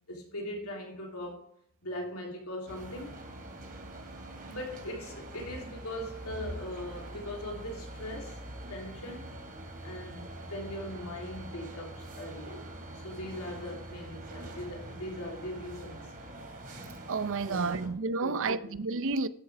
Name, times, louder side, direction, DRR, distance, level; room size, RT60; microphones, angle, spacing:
voice 1, 0.1-1.5 1.8-3.2 4.4-8.4 8.7-9.3 9.8-12.7 13.0-16.1 17.5-17.9 18.2-18.8, left 1 dB, 75° left, 3.2 m, -40 dB
sound 1, 2.7-17.9, right 1 dB, 40° right, 2.9 m, -44 dB
voice 2, 17.1-19.3, right 4 dB, 60° right, 0.6 m, -30 dB
13.5 x 8.3 x 3.4 m
head